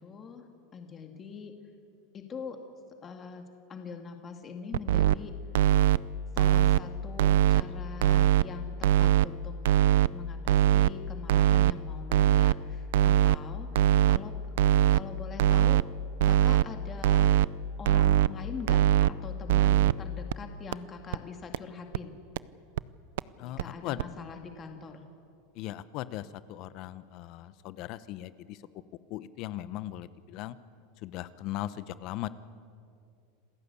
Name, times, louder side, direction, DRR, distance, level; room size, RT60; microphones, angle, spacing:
voice 1, 0.0-1.5 2.1-2.6 3.0-3.4 3.7-5.3 6.3-9.5 10.1-14.3 14.9-15.8 16.2-17.3 17.8-22.2 23.4-25.0, left 5 dB, 25° left, 5 dB, 2.0 m, -43 dB
sound 1, 4.7-5.2 5.5-6.0 6.4-6.8 7.2-7.6 8.0-8.4 8.8-9.3 9.6-10.1 10.5-10.9 11.3-11.7 12.1-12.5 12.9-13.4 13.8-14.2 14.6-15.0 15.4-15.8 16.2-16.6 17.0-17.5 17.9-18.3 18.7-19.1 19.5-19.9 20.3-20.4 20.7-20.8 21.1-21.2 21.5-21.6 21.9-22.0 22.4-22.5 22.8-22.9 23.2-23.3 23.6-23.7 24.0-24.1, right 12 dB, 80° right, 0.5 m, -21 dB
voice 2, 23.4-24.0 25.6-28.6 29.1-30.6 31.0-32.3, left 14 dB, 45° left, 16 dB, 0.8 m, -38 dB
27.5 x 15.5 x 8.4 m, 2.5 s
supercardioid pair, 145°, 0 cm